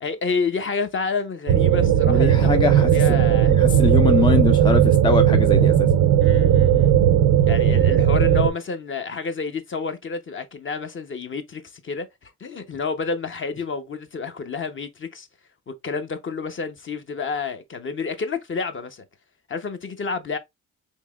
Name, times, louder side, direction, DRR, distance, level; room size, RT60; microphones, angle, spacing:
voice 1, 0.0-2.6 2.9-3.6 6.2-6.9 7.4-15.3 15.7-19.0 19.5-20.4, left 4 dB, 40° left, 0.8 m, -29 dB
sound 1, 1.5-8.5, right 9 dB, 85° right, 0.6 m, -17 dB
voice 2, 2.1-5.9, left 4 dB, 15° left, 0.4 m, -23 dB
4.6 x 2.9 x 2.3 m
cardioid pair, 75°, 32 cm